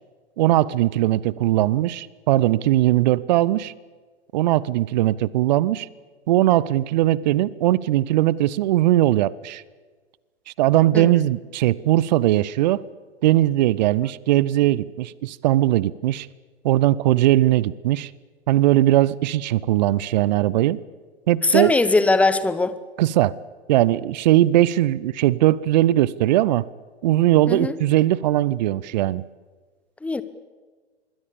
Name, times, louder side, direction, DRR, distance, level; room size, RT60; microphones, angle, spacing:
voice 1, 0.4-3.7 4.3-5.9 6.3-9.6 10.6-12.8 13.2-16.3 16.6-18.1 18.5-20.8 21.3-21.7 23.0-23.4 23.7-26.7 27.0-29.2, right 14 dB, 40° right, 0.8 m, -19 dB
voice 2, 21.4-22.7 27.5-27.8 30.0-30.2, left 3 dB, 5° left, 1.0 m, -20 dB
26.5 x 22.0 x 7.1 m
figure-of-eight pair, 110°, 33 cm